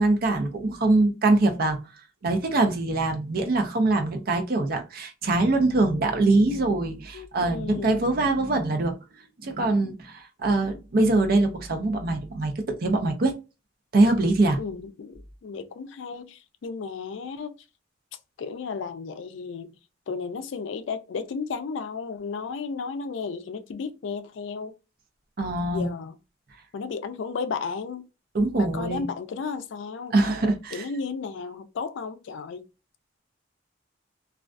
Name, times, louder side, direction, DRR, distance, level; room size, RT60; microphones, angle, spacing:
voice 1, 0.0-1.8 2.2-9.0 9.4-12.5 12.8-13.3 13.9-14.6 25.4-25.9 28.3-29.1 30.1-30.8, right 2 dB, 50° right, 0.5 m, -23 dB
voice 2, 7.1-8.0 14.6-17.5 18.4-19.7 20.1-24.7 25.7-26.2 26.7-28.0 28.6-30.1 30.7-32.7, left 5 dB, 75° left, 0.4 m, -33 dB
2.3 x 2.2 x 2.4 m
head